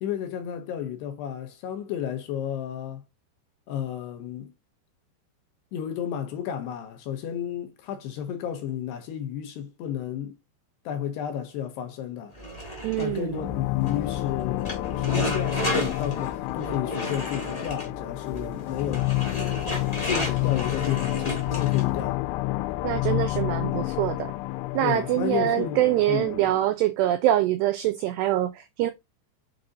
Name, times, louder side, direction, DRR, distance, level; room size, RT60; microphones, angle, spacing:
voice 1, 0.0-3.0 3.7-4.5 5.7-10.3 10.9-12.3 13.0-19.1 20.0-22.2 24.8-25.8 26.1-26.3, left 9 dB, 75° left, 2.7 m, -32 dB
sound 1, 12.3-22.1, equal, 35° left, 0.6 m, -34 dB
voice 2, 12.8-13.4 22.8-24.3 24.7-28.9, right 13 dB, 85° right, 2.4 m, -24 dB
sound 2, 13.3-26.7, left 18 dB, 90° left, 2.4 m, -29 dB
7.4 x 3.9 x 4.0 m
omnidirectional pair, 5.5 m